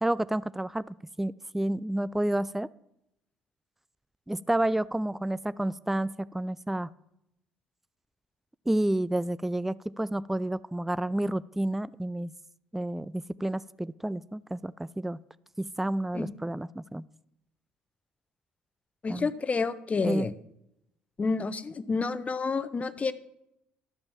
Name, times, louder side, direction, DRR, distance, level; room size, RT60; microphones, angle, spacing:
voice 1, 0.0-0.8 1.2-2.7 4.3-6.9 8.7-12.3 12.7-15.2 15.6-17.0 19.1-19.3 20.0-20.3, right 1 dB, 5° right, 19 dB, 0.3 m, -30 dB
voice 2, 19.0-20.3 21.2-23.1, left 4 dB, 30° left, 13 dB, 0.8 m, -29 dB
12.0 x 5.2 x 7.2 m, 0.82 s
hypercardioid pair, 60°, 4 cm